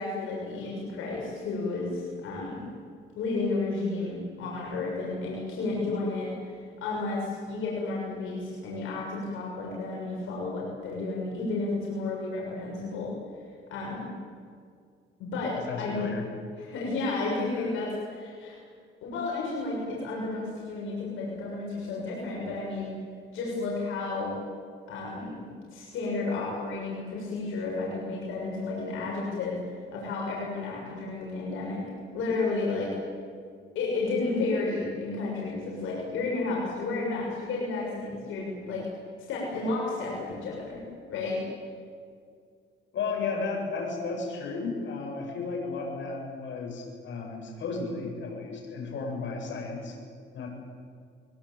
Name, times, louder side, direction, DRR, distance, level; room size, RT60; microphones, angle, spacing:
voice 1, 0.0-2.6 3.2-13.1 13.7-14.1 15.2-16.1 16.6-18.6 19.0-22.9 23.3-24.3 24.9-31.8 32.1-33.0 33.8-38.9 39.3-40.8 41.1-41.4, left 3 dB, 85° left, -4 dB, 7.0 m, -32 dB
voice 2, 15.6-16.3 42.9-50.0 50.3-50.5, left 4 dB, 70° left, 2 dB, 7.4 m, -34 dB
23.5 x 23.0 x 8.8 m, 2.1 s
cardioid pair, 90°, 20 cm